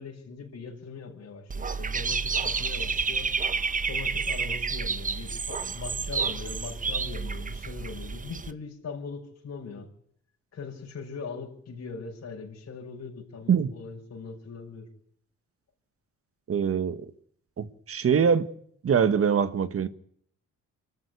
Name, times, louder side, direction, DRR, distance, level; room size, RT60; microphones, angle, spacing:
voice 1, 0.0-3.3 3.9-9.9 10.5-14.9, left 5 dB, 55° left, 6.6 m, -40 dB
Dog / Bird, 1.5-8.5, right 5 dB, 25° right, 1.1 m, -30 dB
voice 2, 16.5-17.1 17.6-18.5 18.8-19.9, right 7 dB, 50° right, 1.6 m, -23 dB
25.0 x 13.5 x 9.8 m
cardioid pair, 90°, 30 cm